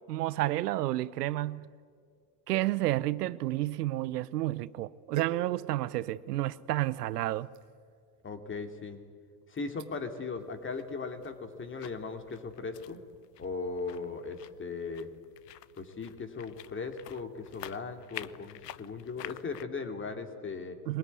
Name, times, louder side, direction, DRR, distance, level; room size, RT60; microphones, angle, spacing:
voice 1, 0.1-1.7 2.5-7.5 20.9-21.0, right 16 dB, 75° right, 0.8 m, -30 dB
sound 1, 3.8-10.2 10.6-10.9, right 8 dB, 35° right, 1.8 m, -52 dB
voice 2, 8.2-9.0 9.5-13.0 13.4-15.1 15.8-20.8, left 4 dB, 25° left, 2.7 m, -38 dB
sound 2, 10.4-19.6, left 12 dB, 85° left, 0.8 m, -49 dB
22.0 x 20.0 x 9.6 m
hypercardioid pair, 85°, 48 cm